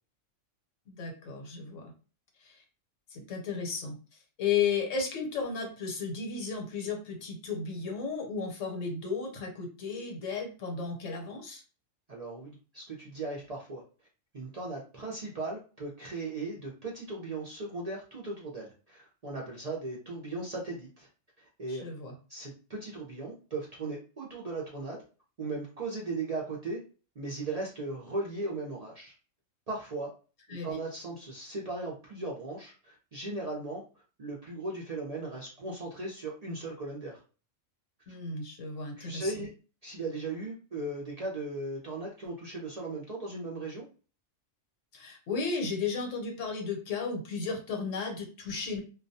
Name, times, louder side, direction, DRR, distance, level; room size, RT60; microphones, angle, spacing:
voice 1, 0.9-1.9 2.4-2.6 3.1-4.0 4.4-11.6 21.7-22.1 30.5-30.7 38.1-39.3 44.9-48.8, left 5 dB, 75° left, 1 dB, 1.0 m, -34 dB
voice 2, 12.1-13.8 14.3-21.1 21.4-21.8 22.3-25.0 25.4-26.8 27.2-29.1 29.7-30.1 30.5-33.8 34.2-37.2 38.1-38.2 39.0-39.5 39.8-43.9, right 2 dB, 55° right, -4 dB, 0.4 m, -37 dB
2.3 x 2.1 x 2.6 m, 0.36 s
omnidirectional pair, 1.4 m